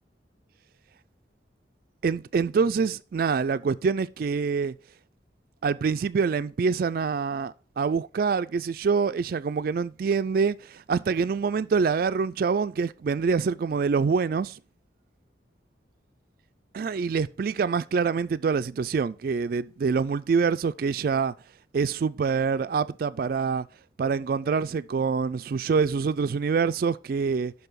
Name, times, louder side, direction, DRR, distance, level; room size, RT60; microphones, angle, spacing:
voice 1, 2.0-4.7 5.6-14.6 16.7-21.3 21.7-23.7 24.0-27.5, right 5 dB, 50° right, 0.3 m, -25 dB
6.8 x 5.4 x 3.9 m
head